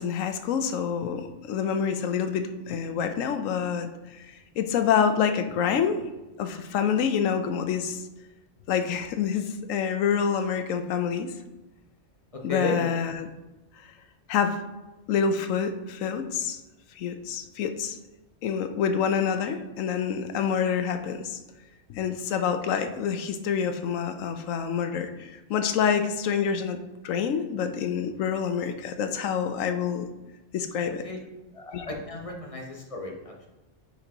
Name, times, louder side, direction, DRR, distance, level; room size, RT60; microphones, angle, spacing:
voice 1, 0.0-4.3 4.6-6.1 6.4-8.0 8.7-11.3 12.4-13.3 14.3-14.6 15.1-16.6 17.0-18.0 18.4-21.4 21.9-26.8 27.0-30.1 30.5-31.0 31.7-31.9, left 7 dB, 85° left, 8 dB, 1.0 m, -27 dB
voice 2, 12.5-12.8 31.0-31.2 31.5-33.5, left 2 dB, 30° left, 0 dB, 0.9 m, -33 dB
9.4 x 4.0 x 2.9 m, 1.1 s
omnidirectional pair, 1.3 m